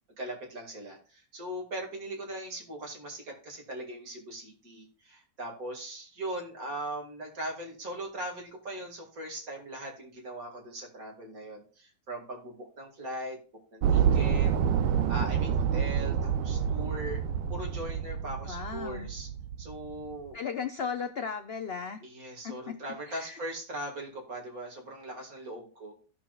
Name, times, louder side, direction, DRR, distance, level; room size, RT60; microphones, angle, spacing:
voice 1, 0.2-13.4 13.7-14.5 15.1-17.2 17.5-19.3 19.6-20.4 22.0-25.9, right 1 dB, 55° right, 0 dB, 2.5 m, -40 dB
sound 1, 13.8-20.1, right 8 dB, 85° right, 1.3 m, -28 dB
voice 2, 18.5-19.1 20.3-22.0 22.4-22.8 23.1-23.4, left 6 dB, 70° left, 8 dB, 0.6 m, -36 dB
16.5 x 6.2 x 2.4 m, 0.39 s
omnidirectional pair, 1.9 m